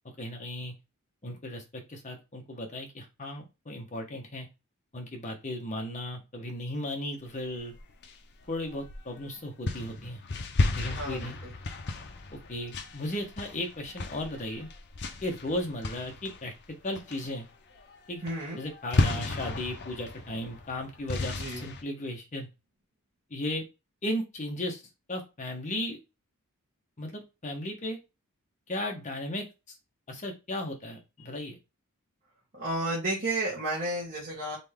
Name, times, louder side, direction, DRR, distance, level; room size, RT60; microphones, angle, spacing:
voice 1, 0.2-0.7 1.2-4.5 4.9-7.7 8.5-10.2 10.8-11.4 12.3-14.7 15.2-16.5 16.8-17.5 18.1-18.2 18.6-22.5 23.3-23.6 24.0-24.8 25.1-26.0 27.0-28.0 28.7-29.5 30.1-31.6, left 1 dB, 35° left, 2 dB, 1.2 m, -35 dB
sound 1, 7.6-9.2 9.7-16.7 17.0-17.4 17.8-18.0 18.2-21.8, left 2 dB, 50° left, 0.7 m, -34 dB
voice 2, 10.9-11.5 18.2-18.6 21.3-21.7 32.5-34.6, right 1 dB, 45° right, -6 dB, 1.8 m, -32 dB
4.1 x 3.4 x 3.6 m, 0.26 s
head